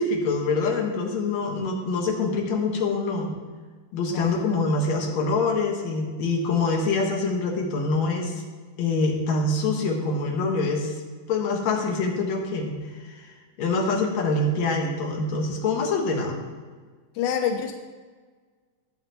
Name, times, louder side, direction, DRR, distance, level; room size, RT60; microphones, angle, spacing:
voice 1, 0.0-3.4 3.9-8.4 8.8-10.9 11.3-12.8 13.0-13.3 13.6-16.4, left 3 dB, 55° left, 0 dB, 2.5 m, -25 dB
voice 2, 4.1-4.5 17.2-17.7, left 8 dB, 85° left, 5 dB, 1.8 m, -27 dB
15.0 x 8.0 x 3.0 m, 1.5 s
omnidirectional pair, 4.3 m